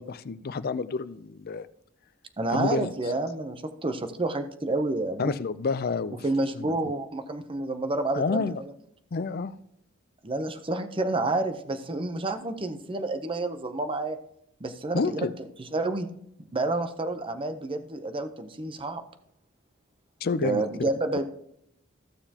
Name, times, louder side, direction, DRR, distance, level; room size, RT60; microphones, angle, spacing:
voice 1, 0.0-1.7 2.5-2.9 5.2-6.2 6.6-6.7 8.1-8.6 9.1-9.5 14.9-15.3 20.2-20.6, left 4 dB, 50° left, 14 dB, 0.4 m, -29 dB
voice 2, 2.4-5.4 6.2-8.7 10.2-14.2 14.6-15.3 15.6-16.1 16.5-19.0 20.4-21.2, right 2 dB, 25° right, 9 dB, 0.7 m, -29 dB
14.5 x 6.8 x 2.9 m, 0.74 s
head